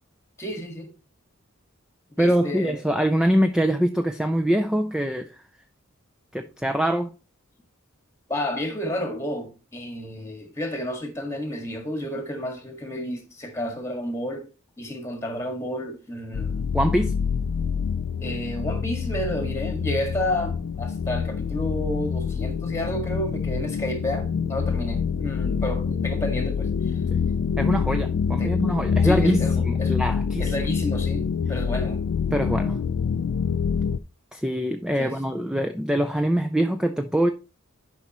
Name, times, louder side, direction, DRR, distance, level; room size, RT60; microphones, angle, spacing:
voice 1, 0.4-0.9 2.2-2.7 8.3-14.5 14.8-16.7 18.2-27.0 28.4-28.6 29.0-29.9 30.4-32.0 35.0-35.2, left 1 dB, 15° left, 1.8 m, -31 dB
voice 2, 2.2-5.4 6.3-7.1 16.7-17.2 27.1-27.2 27.6-30.5 32.3-32.8 34.3-37.3, equal, 5° right, 0.4 m, -24 dB
sound 1, 16.3-34.0, left 6 dB, 75° left, 0.4 m, -26 dB
10.5 x 5.4 x 3.0 m
head